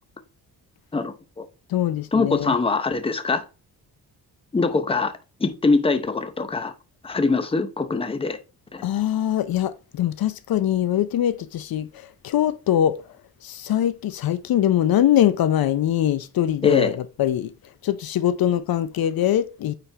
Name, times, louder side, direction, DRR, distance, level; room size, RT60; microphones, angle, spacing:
voice 1, 0.9-1.4 2.1-3.4 4.5-5.1 5.4-6.7 7.0-8.4 8.7-8.8 16.6-16.9, left 3 dB, 15° left, 0.7 m, -23 dB
voice 2, 1.7-2.6 8.8-11.9 12.2-13.0 13.4-17.5 17.8-19.7, left 11 dB, 65° left, 0.6 m, -22 dB
9.1 x 4.3 x 3.3 m
cardioid pair, 125°, 39 cm